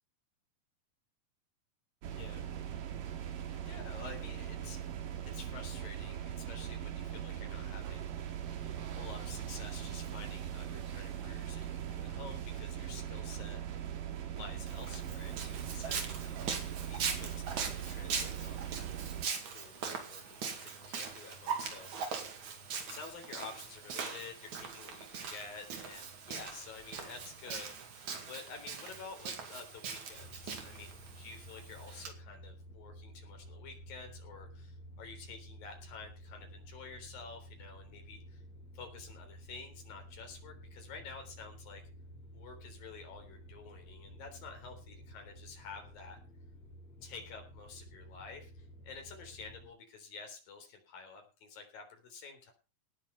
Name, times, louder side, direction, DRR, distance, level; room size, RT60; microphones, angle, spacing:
sound 1, 2.0-19.3, right 10 dB, 75° right, 3.3 m, -40 dB
voice 1, 2.1-2.5 3.6-4.8 5.3-8.1 9.0-13.6 14.3-16.6 16.9-18.7 19.5-22.2 22.8-27.7 28.3-38.4 38.7-41.8 42.3-46.2 47.0-52.5, left 5 dB, 85° left, 4 dB, 5.4 m, -50 dB
Walk footsteps, 14.7-32.1, right 6 dB, 60° right, 3.7 m, -41 dB
sound 2, 30.1-49.7, equal, 50° left, 6.0 m, -52 dB
18.0 x 7.4 x 5.7 m, 0.32 s
omnidirectional pair, 3.9 m